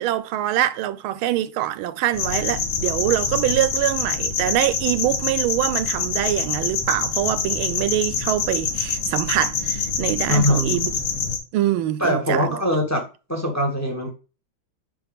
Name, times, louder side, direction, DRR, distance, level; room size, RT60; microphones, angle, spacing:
voice 1, 0.0-10.9 11.5-12.6, right 13 dB, 90° right, 1.5 m, -24 dB
sound 1, 2.1-11.4, left 5 dB, 90° left, 2.0 m, -25 dB
voice 2, 10.3-10.8 12.0-13.0 13.3-14.1, equal, 10° left, 0.9 m, -22 dB
5.5 x 5.0 x 3.5 m
omnidirectional pair, 2.2 m